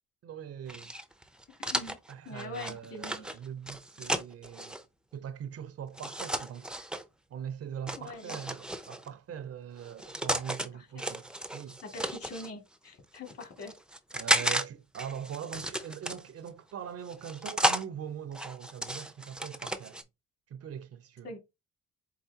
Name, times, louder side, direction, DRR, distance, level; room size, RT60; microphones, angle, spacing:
voice 1, 0.2-0.9 2.1-4.8 5.1-6.8 7.3-11.8 14.1-20.0 20.5-21.3, right 8 dB, 55° right, 0.6 m, -42 dB
sound 1, 0.7-4.8 5.9-7.0 7.9-9.1 9.8-10.7 11.0-12.5 13.1-14.6 14.9-16.5 17.1-17.8 18.3-20.0, right 1 dB, 5° right, 0.5 m, -33 dB
voice 2, 1.6-2.0 2.2-3.2 7.9-8.4 10.7-11.0 11.8-13.7 21.2-21.4, left 2 dB, 50° left, 2.3 m, -43 dB
4.7 x 3.8 x 2.8 m
cardioid pair, 90°, 30 cm